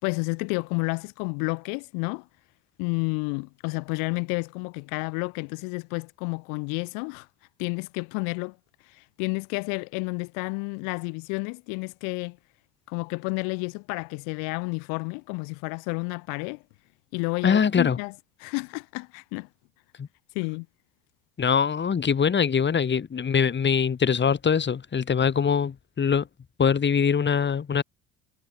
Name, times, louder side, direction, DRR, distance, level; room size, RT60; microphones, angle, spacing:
voice 1, 0.0-2.3 2.8-7.3 7.6-8.6 8.8-12.4 12.9-16.6 17.1-18.1 18.4-19.5 20.3-20.7, left 40 dB or more, 85° left, 2.3 m, -30 dB
voice 2, 17.4-18.0 20.0-20.1 21.4-26.3 26.6-27.8, left 6 dB, 35° left, 4.6 m, -23 dB
supercardioid pair, 90°, 32 cm